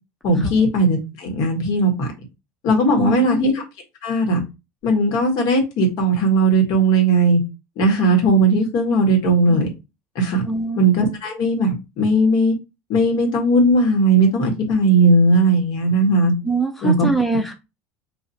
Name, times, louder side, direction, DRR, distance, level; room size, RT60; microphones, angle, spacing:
voice 1, 0.2-2.1 2.6-3.6 4.0-4.4 4.8-7.4 7.8-9.7 10.1-10.4 10.8-12.5 12.9-16.3 16.8-17.1, right 2 dB, 60° left, 1.6 m, -17 dB
voice 2, 2.9-3.5 8.9-9.0 10.5-10.8 16.4-17.5, right 3 dB, ahead, 0.5 m, -23 dB
2.8 x 2.7 x 4.1 m
supercardioid pair, 105°, 8 cm